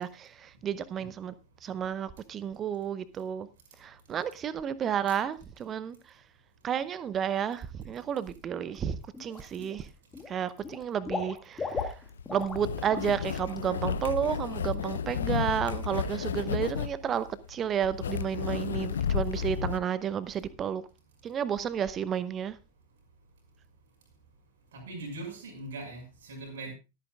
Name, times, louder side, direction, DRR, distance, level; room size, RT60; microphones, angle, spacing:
voice 1, 0.0-1.3 1.6-3.5 3.8-6.0 6.6-9.9 10.3-12.0 12.3-20.8 21.2-22.6, right 8 dB, 25° right, 0.7 m, -32 dB
Water / Liquid, 8.5-8.8 9.1-9.8 10.1-12.6 12.9-13.1 13.5-13.6, left 4 dB, 15° left, 1.6 m, -37 dB
sound 1, 11.8-19.8, left 7 dB, 65° left, 0.5 m, -32 dB
voice 2, 24.7-26.7, right 2 dB, 60° right, 5.7 m, -40 dB
22.5 x 8.9 x 2.4 m
figure-of-eight pair, 90°, 0 cm